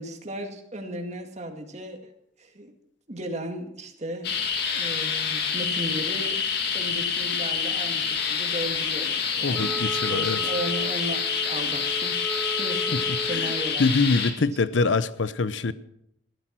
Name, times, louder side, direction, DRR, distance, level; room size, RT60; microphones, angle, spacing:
voice 1, 0.0-2.1 2.4-2.7 3.1-4.3 4.7-6.4 6.7-13.9, equal, 35° right, 2.2 m, -35 dB
sound 1, 4.2-14.3, left 6 dB, 60° left, 2.1 m, -27 dB
voice 2, 9.4-10.4 12.9-13.0 13.3-13.5 13.8-15.7, left 3 dB, 80° left, 0.7 m, -24 dB
Wind instrument woodwind instrument, 9.5-13.7, right 1 dB, ahead, 1.3 m, -35 dB
15.5 x 13.0 x 6.1 m
head